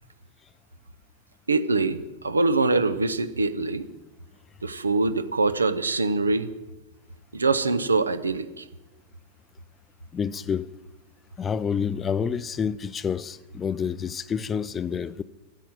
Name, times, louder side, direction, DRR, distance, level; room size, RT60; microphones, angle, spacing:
voice 1, 1.5-3.9 4.6-6.5 7.3-8.6, right 3 dB, 75° right, 0.7 m, -24 dB
voice 2, 10.1-10.7 11.4-15.2, left 7 dB, 20° left, 0.5 m, -28 dB
10.0 x 8.2 x 9.0 m
figure-of-eight pair, 90°, 0 cm